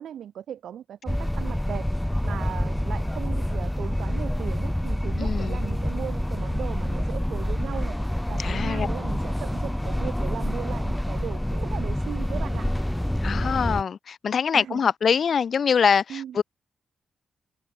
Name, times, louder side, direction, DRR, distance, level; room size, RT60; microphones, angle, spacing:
voice 1, 0.0-1.9 2.2-8.0 8.3-12.7 14.5-14.8 16.1-16.4, right 10 dB, 80° right, 1.5 m, -37 dB
sound 1, 1.1-13.8, left 1 dB, 5° left, 1.6 m, -27 dB
voice 2, 5.2-5.6 8.4-8.9 13.2-16.4, left 6 dB, 50° left, 1.6 m, -24 dB
wide cardioid pair, 155°, 0 cm